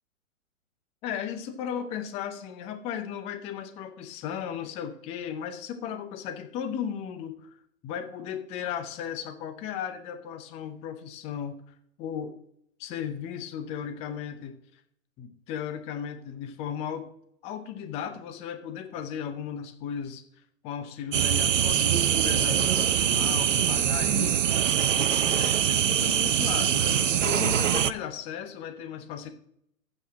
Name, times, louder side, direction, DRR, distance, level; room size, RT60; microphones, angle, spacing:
voice 1, 1.0-7.6 7.8-12.3 12.8-14.6 15.2-17.1 17.4-20.2 20.6-29.3, left 8 dB, 15° left, 9 dB, 0.6 m, -36 dB
sound 1, 21.1-27.9, right 9 dB, 65° right, 0.6 m, -23 dB
7.8 x 5.5 x 7.5 m, 0.71 s
figure-of-eight pair, 120°, 41 cm